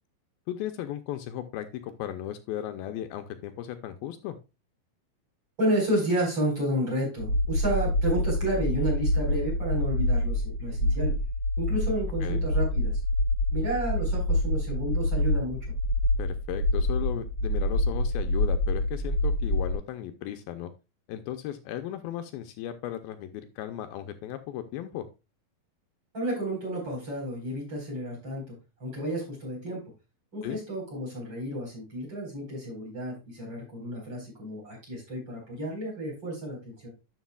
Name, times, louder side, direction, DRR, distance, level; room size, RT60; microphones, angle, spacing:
voice 1, 0.5-4.4 12.2-12.5 16.2-20.7 21.1-25.1 30.4-30.6, left 11 dB, 85° left, 8 dB, 2.4 m, -36 dB
voice 2, 5.6-11.1 11.6-12.9 13.5-15.6 26.1-28.4 28.8-29.8 30.3-36.9, right 1 dB, 30° right, -3 dB, 4.9 m, -31 dB
sound 1, 7.2-19.8, left 1 dB, 80° right, 3.6 m, -26 dB
11.5 x 6.1 x 2.3 m, 0.27 s
omnidirectional pair, 4.3 m